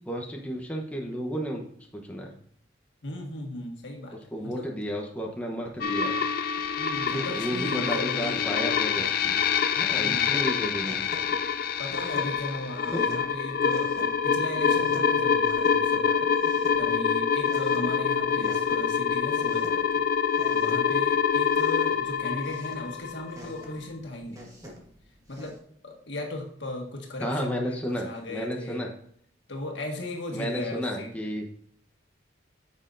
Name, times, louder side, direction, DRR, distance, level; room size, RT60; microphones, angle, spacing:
voice 1, 0.1-1.6 1.9-2.4 4.3-6.2 7.1-9.4 9.7-11.1 12.9-13.0 18.4-18.5 27.2-28.9 30.3-31.5, equal, 10° left, 0 dB, 0.9 m, -32 dB
voice 2, 3.0-4.7 6.8-8.7 10.0-10.3 11.8-20.0 20.5-24.5 25.3-28.9 29.5-31.1, left 1 dB, 70° left, 1 dB, 1.6 m, -37 dB
sound 1, 5.8-23.7, left 7 dB, 50° left, 0.4 m, -26 dB
sound 2, 6.5-25.6, equal, 20° right, 1.5 m, -49 dB
9.4 x 6.6 x 2.6 m, 0.65 s
head